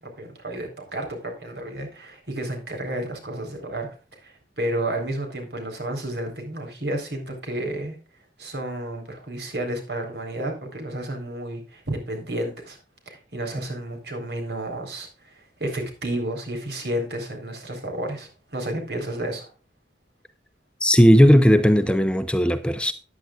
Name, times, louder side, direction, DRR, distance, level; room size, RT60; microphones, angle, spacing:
voice 1, 0.2-3.9 4.2-8.0 8.4-12.8 13.1-19.5, right 1 dB, 70° right, 4.1 m, -31 dB
voice 2, 20.8-22.9, equal, 5° left, 0.6 m, -16 dB
14.0 x 10.5 x 2.4 m
head